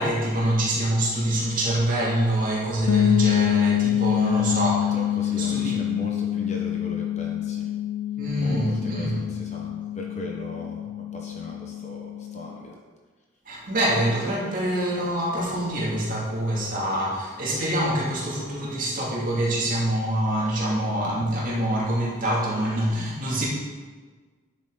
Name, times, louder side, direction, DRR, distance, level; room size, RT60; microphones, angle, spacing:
voice 1, 0.0-4.9 5.4-5.7 8.2-9.2 13.4-23.5, right 1 dB, 40° right, -5 dB, 2.8 m, -25 dB
sound 1, 2.9-12.6, left 11 dB, 75° left, 0.4 m, -26 dB
voice 2, 4.1-4.6 4.9-7.7 8.3-10.9 11.1-12.8, equal, 35° left, -1 dB, 1.3 m, -37 dB
10.5 x 8.2 x 4.1 m, 1.4 s
head